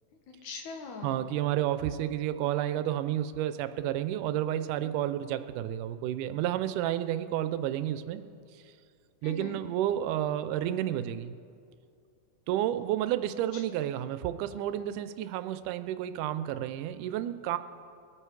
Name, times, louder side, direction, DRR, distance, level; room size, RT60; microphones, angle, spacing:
voice 1, 0.3-1.3 9.2-9.6 13.5-13.9, left 4 dB, 70° left, 3 dB, 2.7 m, -42 dB
voice 2, 1.0-8.2 9.2-11.3 12.5-17.6, right 12 dB, 85° right, 12 dB, 2.1 m, -31 dB
22.0 x 9.0 x 4.7 m, 2.3 s
omnidirectional pair, 3.6 m